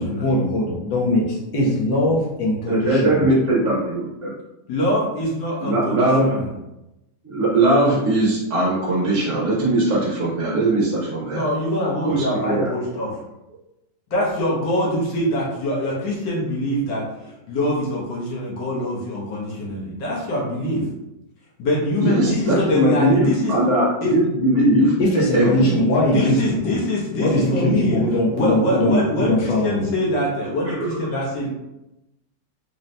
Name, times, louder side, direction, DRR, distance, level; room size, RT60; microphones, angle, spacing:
voice 1, 0.0-3.2 25.0-26.7 27.2-29.9, left 1 dB, 70° left, -4 dB, 1.5 m, -21 dB
voice 2, 2.7-4.3 5.6-6.3 7.2-11.4 12.0-12.7 22.0-25.8 30.6-31.0, right 1 dB, 50° right, -5 dB, 1.0 m, -20 dB
voice 3, 4.7-6.5 11.3-13.1 14.1-17.0 17.5-20.9 21.6-23.5 24.0-24.1 26.0-28.0 28.3-31.5, left 1 dB, 90° left, -4 dB, 1.8 m, -24 dB
4.0 x 2.7 x 3.2 m, 0.93 s
omnidirectional pair, 1.9 m